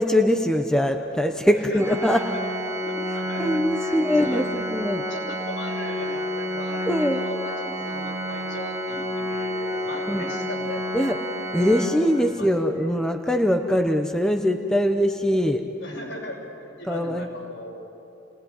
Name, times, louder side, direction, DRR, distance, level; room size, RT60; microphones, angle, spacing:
voice 1, 0.0-2.2 3.4-5.0 6.9-7.2 10.1-10.3 10.9-11.2 11.5-15.6 16.9-17.3, equal, 5° left, 4 dB, 0.9 m, -22 dB
voice 2, 1.5-4.5 5.1-11.0 12.1-12.5 12.7-12.9 15.8-17.7, left 1 dB, 70° left, -1 dB, 6.4 m, -38 dB
Organ, 1.8-12.6, equal, 15° right, 1.7 m, -30 dB
29.5 x 19.5 x 9.9 m, 2.8 s
head